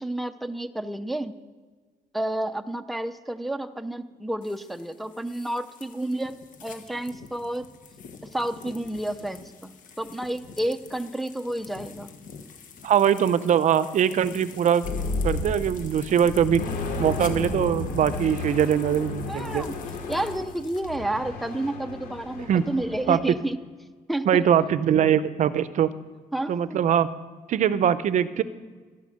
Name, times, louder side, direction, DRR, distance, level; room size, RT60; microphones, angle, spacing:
voice 1, 0.0-1.4 2.1-6.4 6.6-7.7 8.2-12.1 19.3-19.8 20.1-23.6 24.1-24.5 26.3-26.8, right 1 dB, ahead, 9 dB, 0.5 m, -30 dB
sound 1, 4.4-21.0, left 6 dB, 60° left, 1.3 m, -46 dB
voice 2, 12.8-14.9 15.2-16.6 17.0-19.6 22.5-22.7 23.1-23.3 24.3-25.9 26.5-27.1 27.5-28.4, right 9 dB, 55° right, 15 dB, 0.5 m, -22 dB
sound 2, 14.8-15.9 16.2-23.2, left 3 dB, 75° left, 2.6 m, -32 dB
13.0 x 12.5 x 6.4 m, 1.4 s
cardioid pair, 175°, 15 cm